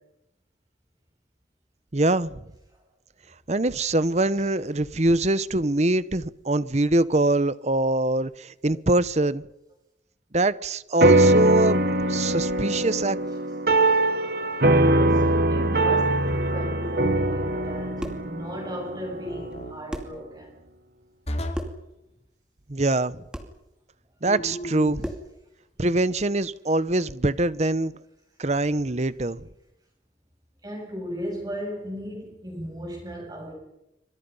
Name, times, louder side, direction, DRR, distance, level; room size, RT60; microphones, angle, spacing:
voice 1, 1.9-2.4 3.5-9.4 10.3-13.2 22.7-23.2 24.2-25.1 25.8-27.9 28.4-29.4, right 2 dB, 35° right, 0.9 m, -24 dB
sound 1, 11.0-19.7, right 1 dB, 55° right, 1.5 m, -22 dB
voice 2, 14.9-16.0 16.4-20.5 30.6-33.5, equal, 20° right, 7.6 m, -36 dB
sound 2, 16.3-16.8 19.3-19.8 21.3-21.8 24.3-25.0, equal, 35° left, 3.0 m, -34 dB
sound 3, 18.0-18.3 19.5-19.6 19.9-20.2 21.5-21.9 23.3-23.6 25.0-25.4, equal, 5° right, 2.5 m, -35 dB
28.0 x 25.5 x 5.6 m
head